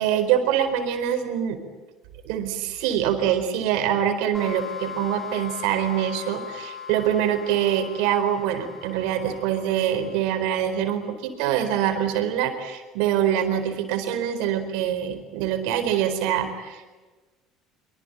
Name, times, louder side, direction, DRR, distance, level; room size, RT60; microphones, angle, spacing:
voice 1, 0.0-1.6 2.2-16.9, right 10 dB, 70° right, 9 dB, 4.4 m, -24 dB
sound 1, 4.3-10.9, left 8 dB, 5° left, 4.0 m, -39 dB
25.5 x 24.5 x 9.1 m, 1.3 s
hypercardioid pair, 70°, 0 cm